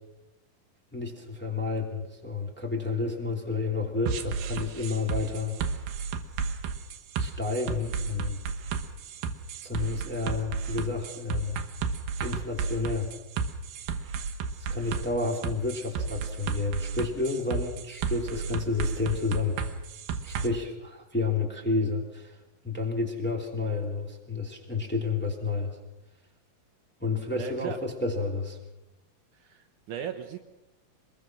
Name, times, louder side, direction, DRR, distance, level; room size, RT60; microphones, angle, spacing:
voice 1, 0.9-5.6 7.2-8.4 9.6-11.6 12.2-13.1 14.7-19.6 20.2-22.4 22.6-25.8 27.0-28.6, left 3 dB, 5° left, -1 dB, 2.5 m, -30 dB
sound 1, 4.1-20.5, right 5 dB, 90° right, 3.0 m, -32 dB
voice 2, 27.4-27.8 29.4-30.4, right 9 dB, 70° right, 6 dB, 2.4 m, -36 dB
24.0 x 21.5 x 6.1 m, 0.98 s
omnidirectional pair, 4.0 m